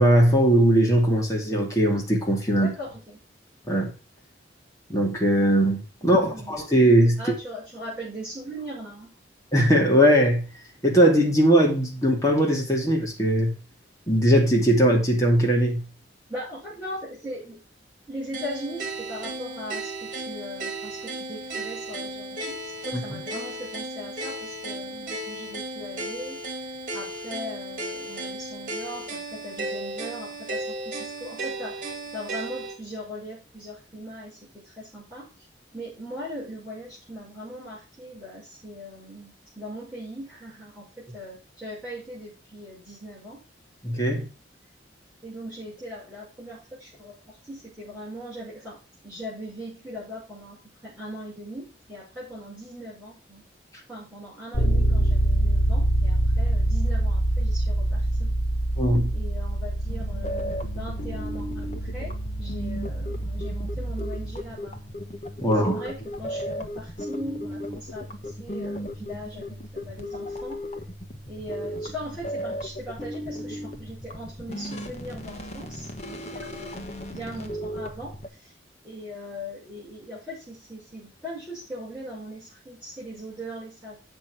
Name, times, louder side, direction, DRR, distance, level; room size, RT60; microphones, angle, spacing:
voice 1, 0.0-2.7 3.7-3.9 4.9-7.2 9.5-10.5 10.8-13.5 14.1-15.8 22.9-23.0 43.8-44.2 58.8-59.1 65.4-65.8, right 1 dB, 20° left, 2.7 m, -20 dB
voice 2, 2.6-3.2 6.0-6.6 7.2-9.1 16.3-17.6 18.1-26.4 26.9-35.3 35.7-43.4 45.2-48.8 49.0-50.6 50.8-53.4 53.9-58.4 59.1-64.8 65.4-70.7 71.3-78.5 78.8-84.0, equal, 5° right, 6.2 m, -39 dB
sound 1, 18.3-32.8, right 2 dB, 45° right, 2.7 m, -35 dB
Bass guitar, 54.5-64.4, right 1 dB, 60° left, 4.5 m, -25 dB
sound 2, 59.9-78.3, equal, 40° left, 1.3 m, -36 dB
8.8 x 6.2 x 6.3 m
head